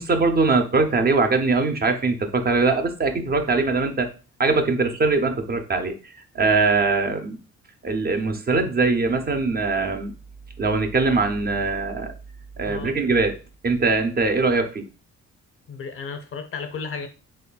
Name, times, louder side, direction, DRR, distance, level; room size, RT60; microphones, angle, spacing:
voice 1, 0.0-4.1 4.4-5.9 6.3-7.4 7.8-10.1 10.6-12.1 12.6-13.4 13.6-14.8, right 3 dB, 30° right, 6 dB, 0.6 m, -21 dB
voice 2, 15.7-17.1, left 5 dB, 45° left, 8 dB, 0.6 m, -33 dB
4.2 x 3.1 x 2.2 m, 0.33 s
cardioid pair, 90°, 30 cm